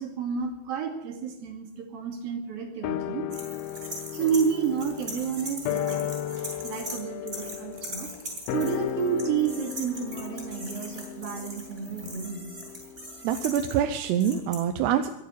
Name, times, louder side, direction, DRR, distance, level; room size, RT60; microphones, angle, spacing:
voice 1, 0.0-3.3 4.1-6.1 6.6-8.1 8.5-12.5, right 7 dB, 60° right, 3 dB, 4.2 m, -30 dB
sound 1, 2.8-13.4 13.7-13.8, left 11 dB, 85° left, 2.1 m, -35 dB
sound 2, 3.3-7.0 7.3-14.5, right 1 dB, 15° right, 6.8 m, -40 dB
voice 2, 13.2-15.1, right 9 dB, 80° right, 7 dB, 2.8 m, -25 dB
22.5 x 9.4 x 6.5 m, 0.92 s
omnidirectional pair, 5.0 m